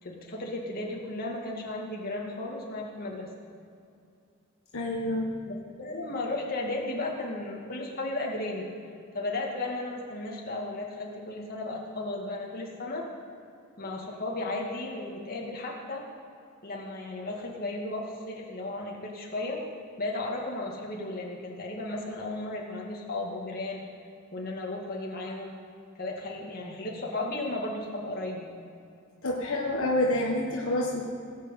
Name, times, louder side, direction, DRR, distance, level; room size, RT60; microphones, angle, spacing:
voice 1, 0.0-3.3 5.5-8.7 9.1-13.1 13.8-16.0 16.6-19.6 20.0-23.8 24.3-25.6 26.0-28.5, left 2 dB, 45° left, -2 dB, 2.3 m, -34 dB
voice 2, 4.7-5.3 29.2-31.0, left 1 dB, 70° left, -2 dB, 1.5 m, -27 dB
18.5 x 6.2 x 8.3 m, 2.5 s
head